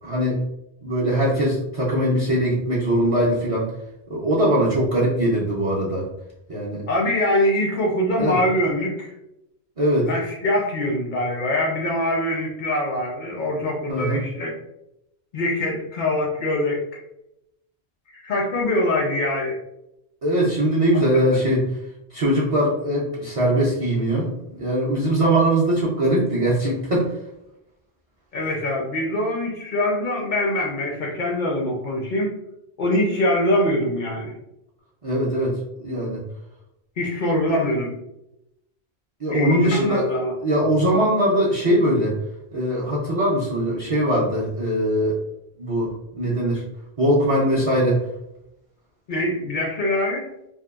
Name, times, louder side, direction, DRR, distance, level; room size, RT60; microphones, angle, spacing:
voice 1, 0.0-0.4 0.8-3.7 4.1-6.1 6.5-6.8 8.2-8.4 9.8-10.1 13.9-14.2 20.2-21.7 22.1-27.1 35.0-36.2 39.2-40.1 40.4-42.2 42.5-45.2 45.6-46.6 47.0-48.0, right 1 dB, 50° right, -5 dB, 0.4 m, -21 dB
voice 2, 6.9-9.1 10.1-14.5 15.3-17.0 18.1-19.6 28.3-32.3 32.8-34.3 37.0-38.0 39.3-40.3 49.1-50.3, left 1 dB, 55° left, -1 dB, 0.6 m, -23 dB
2.8 x 2.2 x 2.3 m, 0.85 s
omnidirectional pair, 1.1 m